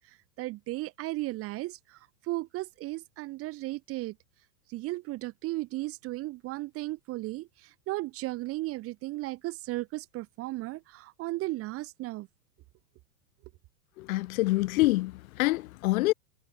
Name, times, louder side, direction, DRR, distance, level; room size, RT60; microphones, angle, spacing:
voice 1, 0.4-4.1 4.7-12.3, right 19 dB, 30° right, 0.9 m, -35 dB
voice 2, 14.0-16.1, left 19 dB, 55° left, 1.5 m, -26 dB
hypercardioid pair, 120°, 49 cm